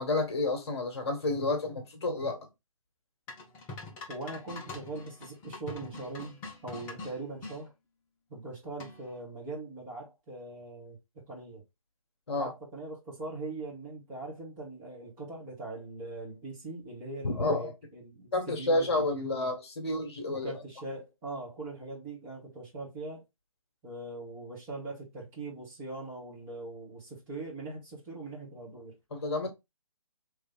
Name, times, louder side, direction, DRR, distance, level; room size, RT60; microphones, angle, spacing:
voice 1, 0.0-2.5 12.3-12.5 17.2-17.7 18.3-20.5 29.1-29.5, left 2 dB, 50° left, 1.3 m, -30 dB
sound 1, 3.3-7.6 8.8-9.2, left 3 dB, 10° left, 0.6 m, -44 dB
voice 2, 4.1-7.7 8.3-11.0 11.3-11.6 12.3-19.5 20.3-23.2 23.8-28.9, right 2 dB, 15° right, 1.4 m, -41 dB
3.2 x 3.2 x 3.8 m
figure-of-eight pair, 140°, 18 cm